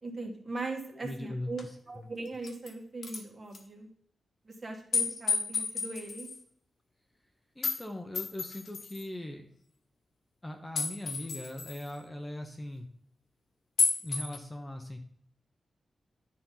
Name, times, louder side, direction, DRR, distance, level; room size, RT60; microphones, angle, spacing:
voice 1, 0.0-3.9 4.4-6.3, right 3 dB, 35° right, 1 dB, 2.0 m, -40 dB
voice 2, 0.9-2.1 7.5-9.5 10.4-12.9 14.0-15.0, left 1 dB, 15° left, 3 dB, 1.0 m, -40 dB
sound 1, 1.6-1.7 2.3-2.7 3.0-3.2 3.5-3.6 4.9-6.4 7.6-7.8 8.1-9.1 10.8-11.9 13.8-14.4, left 4 dB, 65° left, 1.4 m, -31 dB
10.5 x 4.3 x 5.7 m, 0.64 s
wide cardioid pair, 110°, 0 cm